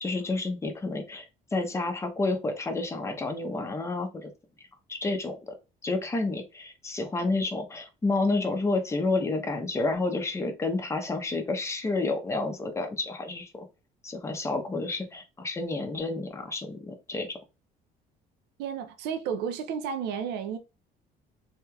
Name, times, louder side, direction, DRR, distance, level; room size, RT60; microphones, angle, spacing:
voice 1, 0.0-4.3 4.9-5.5 5.8-13.6 14.0-17.4, left 3 dB, 15° left, 0.7 m, -30 dB
voice 2, 18.6-20.6, right 7 dB, 85° right, 0.5 m, -32 dB
3.2 x 2.8 x 2.2 m
cardioid pair, 110°, 17 cm